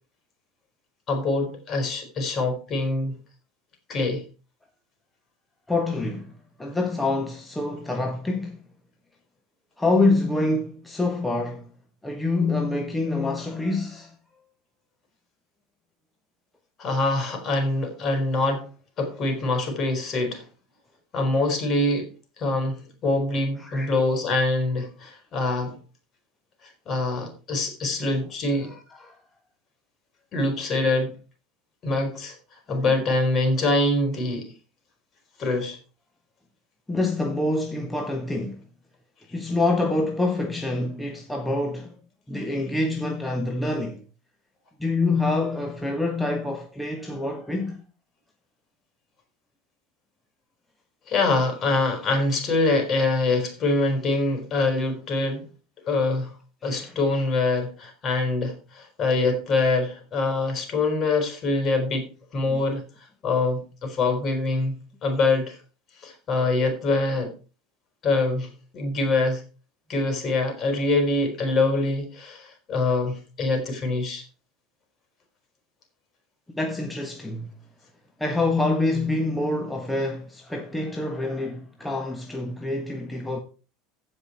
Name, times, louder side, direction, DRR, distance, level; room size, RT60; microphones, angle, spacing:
voice 1, 1.1-3.2 3.9-4.3 16.8-18.7 19.0-20.4 21.1-22.1 22.4-25.8 26.9-28.7 30.3-31.1 31.8-32.3 32.7-34.5 35.4-35.8 51.1-55.5 55.9-56.3 56.6-62.9 63.2-65.6 66.0-67.4 68.0-69.4 69.9-74.2, left 2 dB, 40° left, 4.6 m, -24 dB
voice 2, 5.7-6.3 6.6-8.7 9.8-11.7 12.0-14.1 23.6-23.9 28.6-29.1 32.7-32.9 36.9-38.6 39.3-41.9 42.3-44.0 44.8-47.8 56.6-57.0 62.5-62.6 76.5-77.5 78.2-83.4, left 2 dB, 10° left, 1.5 m, -26 dB
16.0 x 5.5 x 4.5 m
figure-of-eight pair, 75°, 0 cm